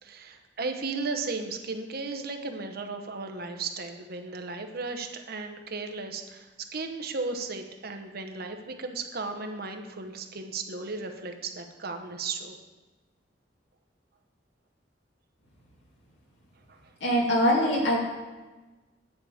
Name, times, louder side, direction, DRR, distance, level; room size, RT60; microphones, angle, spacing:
voice 1, 0.0-12.6 16.7-16.9, right 3 dB, 55° right, 5 dB, 1.0 m, -35 dB
voice 2, 17.0-18.0, equal, 80° left, -3 dB, 2.6 m, -23 dB
9.5 x 5.0 x 7.5 m, 1.2 s
head